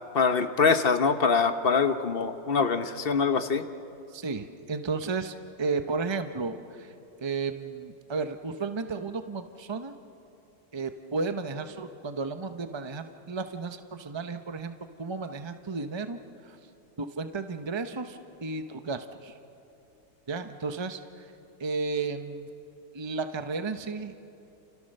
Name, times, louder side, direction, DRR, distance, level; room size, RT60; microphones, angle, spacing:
voice 1, 0.1-3.6, left 5 dB, 40° left, 9 dB, 0.9 m, -24 dB
voice 2, 4.1-6.9 7.2-9.9 10.7-14.7 15.0-16.6 17.0-19.4 20.3-21.3 21.6-22.5 22.9-24.1, right 4 dB, 40° right, 8 dB, 0.3 m, -33 dB
29.5 x 29.0 x 6.6 m, 2.8 s
omnidirectional pair, 1.9 m